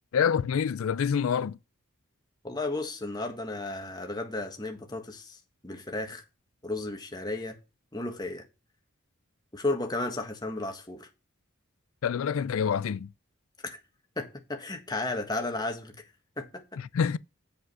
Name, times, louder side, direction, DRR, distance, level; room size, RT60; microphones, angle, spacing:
voice 1, 0.1-1.6 12.0-13.1 16.8-17.2, left 7 dB, 75° left, 0.4 m, -27 dB
voice 2, 2.4-6.2 6.6-7.6 7.9-8.4 9.5-11.1 13.6-13.8 14.2-16.0 16.4-16.8, left 2 dB, 20° left, 1.6 m, -34 dB
8.1 x 5.1 x 6.3 m
head